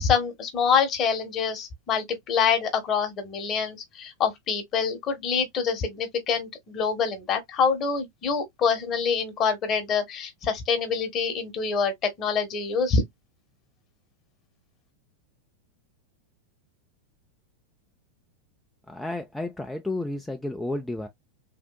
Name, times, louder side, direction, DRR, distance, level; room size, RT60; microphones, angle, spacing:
voice 1, 0.0-13.0, left 6 dB, 30° left, 1.1 m, -26 dB
voice 2, 18.9-21.1, left 2 dB, 5° left, 0.4 m, -32 dB
3.7 x 2.5 x 2.2 m
figure-of-eight pair, 90°, 0 cm